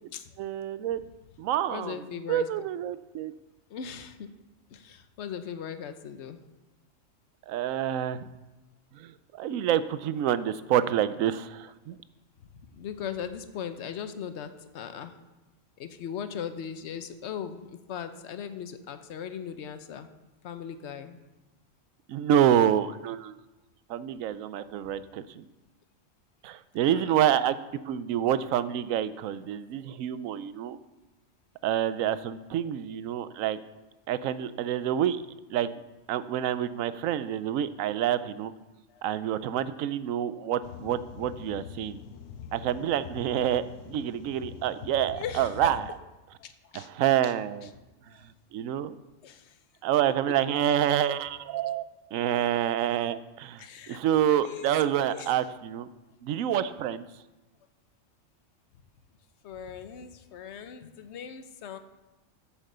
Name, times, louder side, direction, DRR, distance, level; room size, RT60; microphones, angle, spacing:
voice 1, 0.4-1.0 1.4-2.0 2.3-3.3 7.5-8.3 8.9-12.0 22.1-23.3 23.9-25.5 26.4-27.6 27.9-30.8 31.6-33.6 34.1-35.2 35.5-35.7 36.1-38.5 39.0-42.0 42.5-45.9 46.7-47.7 48.5-49.0 49.8-51.8 52.1-55.9 56.2-57.0, right 10 dB, 85° right, 14 dB, 1.0 m, -27 dB
voice 2, 1.7-2.5 3.7-4.3 4.7-6.4 12.7-15.1 15.8-20.1 20.4-21.2 26.9-27.2 38.9-39.0 45.2-45.7 46.4-46.9 47.2-47.3 47.6-47.7 48.1-48.3 49.2-49.6 50.4-50.8 53.6-54.0 54.3-54.7 55.0-55.4 59.4-61.8, left 8 dB, 60° left, 9 dB, 1.0 m, -39 dB
sound 1, 40.6-45.9, left 8 dB, 80° left, 1.0 m, -44 dB
8.9 x 7.3 x 6.7 m, 1.0 s
omnidirectional pair, 1.4 m